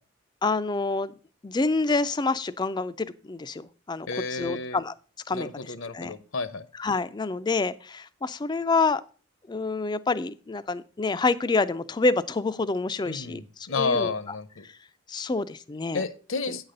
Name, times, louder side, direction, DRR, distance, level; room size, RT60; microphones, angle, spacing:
voice 1, 0.4-1.1 1.4-4.9 5.3-6.1 6.8-9.0 9.5-14.4 14.6-14.7 15.1-16.0, left 3 dB, 20° left, 14 dB, 0.3 m, -27 dB
voice 2, 4.1-4.8 5.3-6.6 13.0-14.6 15.9-16.7, left 4 dB, 65° left, 13 dB, 0.7 m, -31 dB
9.3 x 4.0 x 6.5 m, 0.38 s
head